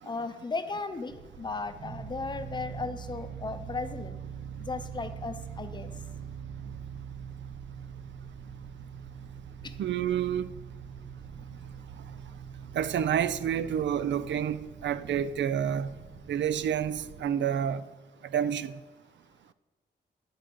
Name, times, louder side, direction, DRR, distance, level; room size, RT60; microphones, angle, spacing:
voice 1, 0.0-4.2 4.6-5.9 9.6-9.8, left 4 dB, 25° left, 0.6 m, -36 dB
sound 1, 1.1-17.3, right 7 dB, 40° right, 0.6 m, -43 dB
voice 2, 9.8-10.5 12.7-16.0 16.3-17.9 18.3-18.8, right 9 dB, 85° right, 0.5 m, -29 dB
9.6 x 7.8 x 5.3 m
wide cardioid pair, 170°, 18 cm